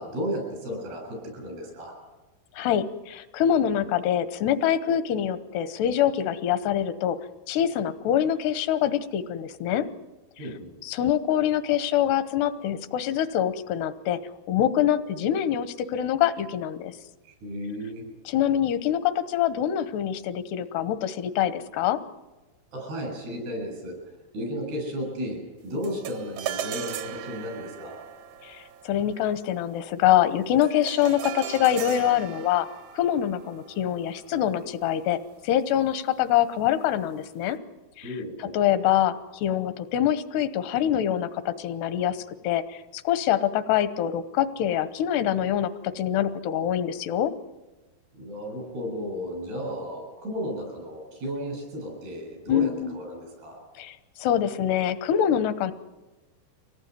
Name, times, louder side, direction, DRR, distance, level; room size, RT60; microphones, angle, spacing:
voice 1, 0.0-2.0 10.4-10.7 17.4-18.1 22.7-28.1 38.0-38.6 48.2-53.6, equal, 85° right, 3 dB, 9.6 m, -34 dB
voice 2, 2.6-7.2 7.5-9.9 10.8-14.2 14.5-16.9 18.3-22.0 28.4-32.7 32.9-35.2 35.4-37.6 38.0-38.1 38.4-47.3 52.5-52.9 53.8-55.7, left 10 dB, 90° left, 12 dB, 3.1 m, -25 dB
sound 1, 25.8-35.3, right 10 dB, 65° right, 2.0 m, -39 dB
24.0 x 18.0 x 9.5 m, 1.2 s
omnidirectional pair, 4.6 m